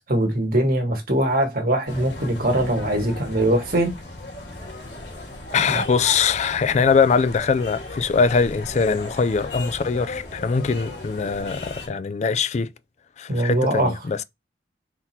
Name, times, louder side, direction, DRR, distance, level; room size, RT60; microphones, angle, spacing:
voice 1, 0.0-3.9 5.7-5.8 13.3-13.9, right 1 dB, 50° right, 1.5 m, -22 dB
sound 1, 1.9-11.9, left 2 dB, 70° left, 1.9 m, -36 dB
voice 2, 5.5-12.7 13.2-14.2, left 5 dB, 40° left, 0.3 m, -22 dB
4.1 x 2.8 x 4.2 m
head